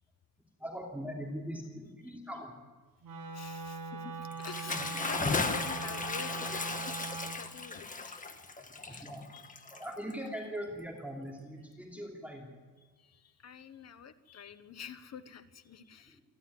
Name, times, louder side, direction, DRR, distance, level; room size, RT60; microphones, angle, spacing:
voice 1, 0.6-2.5 8.6-9.3 9.7-12.5 16.1-16.2, equal, 5° right, -1 dB, 3.0 m, -41 dB
Wind instrument woodwind instrument, 3.0-7.4, right 5 dB, 55° right, 6.6 m, -41 dB
voice 2, 3.3-8.4 8.9-9.1 9.3-9.4 13.0-16.2, left 8 dB, 40° left, 11 dB, 1.3 m, -47 dB
Bathtub (filling or washing) / Splash splatter, 4.3-10.3, left 3 dB, 20° left, 1.5 m, -36 dB
28.0 x 11.5 x 9.6 m, 1.4 s
cardioid pair, 130°, 40 cm